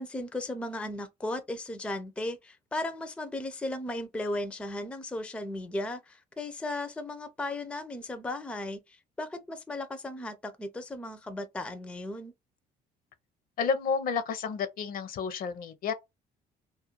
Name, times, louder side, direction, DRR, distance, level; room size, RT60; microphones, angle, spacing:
voice 1, 0.0-12.3, left 1 dB, 5° left, 0.4 m, -36 dB
voice 2, 13.6-15.9, left 5 dB, 60° left, 0.5 m, -30 dB
2.3 x 2.2 x 2.9 m
cardioid pair, 110°, 17 cm